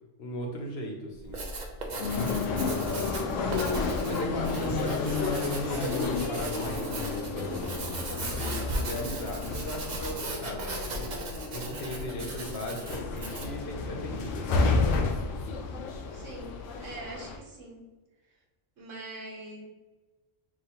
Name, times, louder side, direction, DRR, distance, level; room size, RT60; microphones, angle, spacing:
voice 1, 0.2-1.4 1.9-3.3 4.0-7.7 8.1-11.1 11.5-14.9, left 1 dB, 60° left, 1 dB, 0.9 m, -38 dB
Writing, 1.2-13.6, right 2 dB, 45° right, 0.6 m, -37 dB
sound 1, 2.0-17.4, left 4 dB, 90° left, 0.9 m, -31 dB
voice 2, 2.9-3.7 4.3-4.8 16.1-17.8 18.3-18.4 18.8-19.6, right 1 dB, 85° right, -2 dB, 1.4 m, -44 dB
6.1 x 2.4 x 2.8 m, 1.2 s
omnidirectional pair, 1.3 m